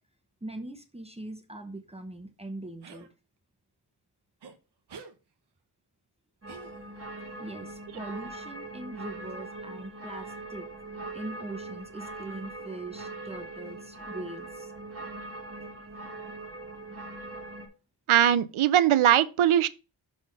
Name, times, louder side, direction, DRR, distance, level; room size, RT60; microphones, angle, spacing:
voice 1, 0.4-3.1 7.1-10.7 11.1-14.7, right 2 dB, 15° right, 0.8 m, -41 dB
sound 1, 2.8-3.1 4.4-4.5 4.9-5.1 6.5-7.1, right 5 dB, 55° right, 1.0 m, -47 dB
sound 2, 6.4-17.7, right 2 dB, 30° right, 1.8 m, -41 dB
voice 2, 18.1-19.7, right 11 dB, 85° right, 0.7 m, -21 dB
6.5 x 4.3 x 5.2 m
wide cardioid pair, 155°, 48 cm